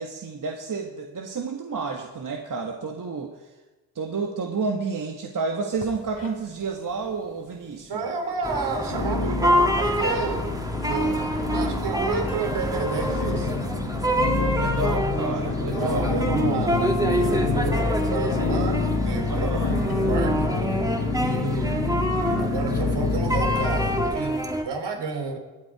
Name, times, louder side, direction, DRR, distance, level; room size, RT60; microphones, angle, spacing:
voice 1, 0.0-3.4 3.9-8.1 14.4-16.1 19.3-19.8, right 4 dB, 45° right, 1.6 m, -30 dB
sound 1, 5.7-6.7 6.9-7.6 8.1-8.2 8.9-24.1, left 3 dB, 70° left, 3.0 m, -27 dB
voice 2, 7.9-10.5 10.8-11.2 11.5-13.5 15.6-20.8 21.2-25.4, right 4 dB, 60° right, 3.3 m, -31 dB
sound 2, 8.4-24.6, equal, 10° right, 2.2 m, -27 dB
20.5 x 8.1 x 4.8 m
supercardioid pair, 55°, 45 cm